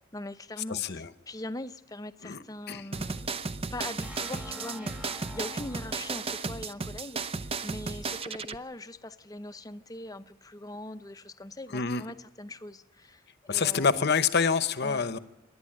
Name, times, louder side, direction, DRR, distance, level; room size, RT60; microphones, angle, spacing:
voice 1, 0.1-3.3 3.7-13.2 13.5-14.1 14.8-15.1, left 1 dB, 15° left, 0.6 m, -41 dB
voice 2, 0.7-1.1 2.2-2.4 2.7-2.8 11.7-12.0 13.5-15.2, left 5 dB, 55° left, 0.9 m, -26 dB
sound 1, 2.9-8.6, right 4 dB, 30° right, 0.6 m, -34 dB
sound 2, 4.0-7.8, left 1 dB, 5° right, 1.4 m, -47 dB
27.0 x 11.0 x 8.9 m
head